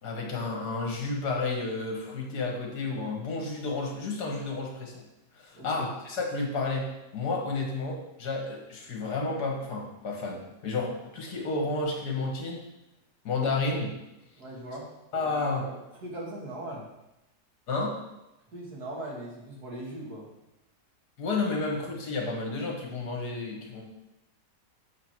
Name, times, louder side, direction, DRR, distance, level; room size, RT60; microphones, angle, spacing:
voice 1, 0.0-5.0 5.4-12.7 13.3-14.0 15.1-15.7 17.7-18.0 21.2-23.8, left 3 dB, 65° left, 0 dB, 1.9 m, -31 dB
voice 2, 5.5-5.9 14.4-14.9 15.2-16.9 18.5-20.3, right 1 dB, 60° right, -4 dB, 2.4 m, -40 dB
7.2 x 5.0 x 6.0 m, 0.93 s
omnidirectional pair, 1.9 m